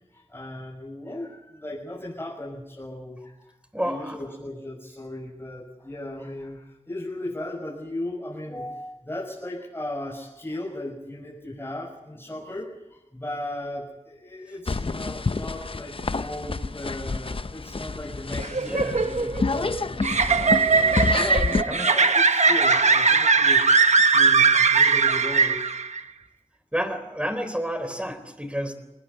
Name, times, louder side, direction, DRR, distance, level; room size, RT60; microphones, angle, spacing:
voice 1, 0.1-3.5 3.8-23.6 24.1-25.7, left 1 dB, 20° left, -5 dB, 6.5 m, -36 dB
voice 2, 3.7-4.2 18.6-19.0 21.7-21.9 26.7-28.7, equal, 10° right, 10 dB, 3.9 m, -30 dB
sound 1, 14.7-21.6, left 3 dB, 50° left, 0.8 m, -29 dB
sound 2, 18.4-26.0, right 4 dB, 90° right, 1.2 m, -20 dB
25.0 x 19.5 x 8.3 m, 0.93 s
wide cardioid pair, 60°, 12 cm